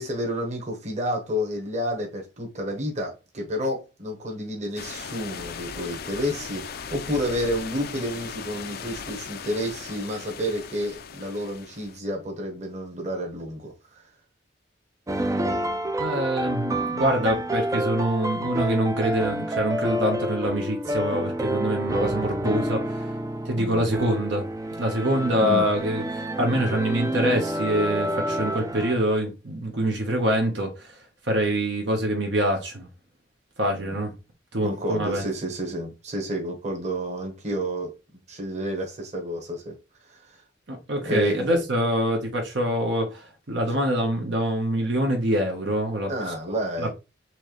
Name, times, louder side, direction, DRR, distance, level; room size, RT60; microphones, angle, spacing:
voice 1, 0.0-14.0 23.6-23.9 25.4-25.7 33.7-34.0 34.6-37.9 38.3-39.7 40.1-40.2 41.0-41.5 46.1-46.9, equal, 40° right, 1.3 m, -30 dB
sound 1, 4.8-12.0, left 6 dB, 55° left, 0.5 m, -38 dB
sound 2, 15.1-29.0, right 1 dB, 15° right, 0.4 m, -28 dB
voice 2, 16.0-23.0 23.4-24.5 24.8-30.9 31.3-32.9 33.6-34.1 34.5-35.2 40.7-46.1 46.8-46.9, right 1 dB, 75° right, 1.1 m, -25 dB
4.4 x 3.2 x 3.2 m
head